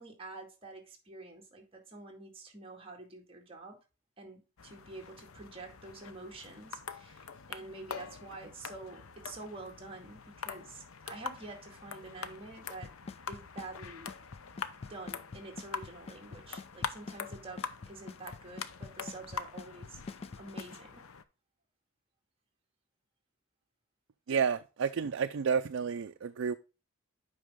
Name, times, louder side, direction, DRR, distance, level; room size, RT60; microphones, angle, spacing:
voice 1, 0.0-3.8 4.2-10.8 11.1-12.9 13.3-14.1 14.8-20.0 20.4-21.0, right 3 dB, 25° right, 2.2 m, -47 dB
sound 1, 4.6-21.2, left 6 dB, 85° left, 0.7 m, -44 dB
Drum kit / Snare drum / Bass drum, 12.8-20.8, left 4 dB, 30° left, 0.3 m, -44 dB
voice 2, 24.3-26.5, right 6 dB, 70° right, 0.4 m, -30 dB
8.3 x 5.4 x 3.6 m
head